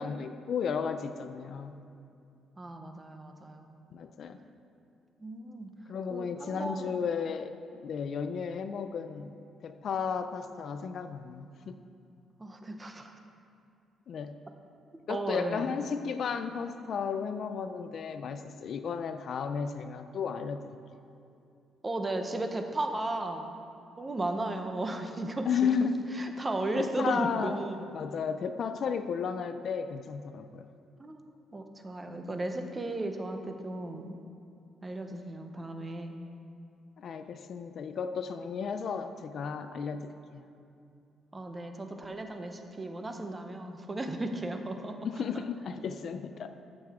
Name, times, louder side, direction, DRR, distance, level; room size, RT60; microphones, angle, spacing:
voice 1, 0.0-1.7 3.9-4.4 5.9-7.5 7.8-9.3 9.6-11.8 14.1-14.4 15.1-20.6 25.5-26.0 26.8-27.6 27.9-30.7 37.0-40.4 45.0-46.5, left 6 dB, 55° left, 9 dB, 0.4 m, -33 dB
voice 2, 2.6-3.8 5.2-5.7 6.1-7.0 12.4-13.1 15.1-15.9 21.8-23.5 24.0-25.5 25.8-25.9 26.1-27.8 31.0-31.2 31.5-34.2 34.8-36.2 41.3-45.0 45.3-45.4, right 2 dB, 20° right, 5 dB, 0.7 m, -35 dB
14.5 x 6.4 x 3.6 m, 2.6 s
cardioid pair, 130°, 0 cm